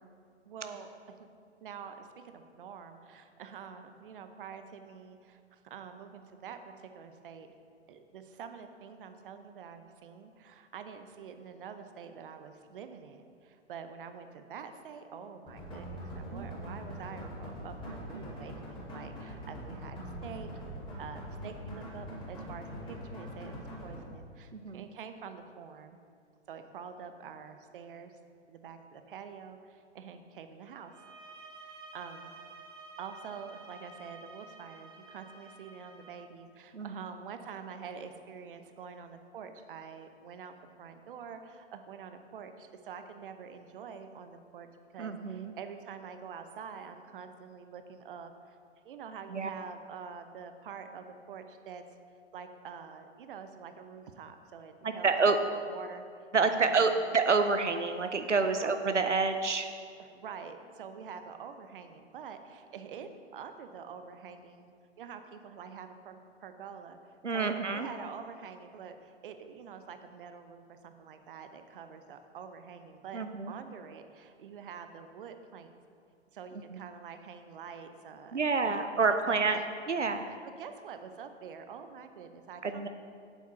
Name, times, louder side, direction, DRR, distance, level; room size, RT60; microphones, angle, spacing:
voice 1, 0.5-1.3 1.6-7.5 7.9-20.5 21.0-26.0 26.5-28.1 28.5-30.9 31.6-32.3 33.0-44.7 44.9-48.6 48.8-51.8 52.3-55.1 55.4-56.9 58.5-58.7 60.0-75.7 76.3-78.8 79.1-79.7 80.2-82.9, right 6 dB, 50° right, 8 dB, 0.8 m, -46 dB
sound 1, 15.5-23.9, equal, 15° left, 2.6 m, -42 dB
voice 2, 24.5-24.9 36.7-37.0 45.0-45.5 49.3-49.5 54.8-55.4 56.3-59.7 67.2-67.9 73.1-73.5 76.7-76.8 78.3-79.6 79.9-80.2 82.6-82.9, right 4 dB, 90° right, 7 dB, 0.6 m, -28 dB
sound 2, 30.9-36.2, right 3 dB, 15° right, 0.9 m, -51 dB
8.4 x 8.0 x 4.4 m, 2.2 s
figure-of-eight pair, 110°, 35 cm